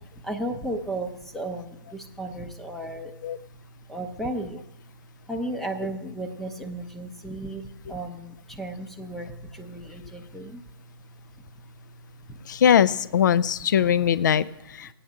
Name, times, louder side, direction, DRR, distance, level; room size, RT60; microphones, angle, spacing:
voice 1, 0.0-3.1 3.9-4.6 5.3-10.6 12.3-12.4, right 1 dB, ahead, 3 dB, 0.6 m, -34 dB
voice 2, 12.5-14.9, left 8 dB, 50° left, 16 dB, 0.4 m, -21 dB
17.5 x 8.6 x 3.6 m, 0.89 s
figure-of-eight pair, 130°, 13 cm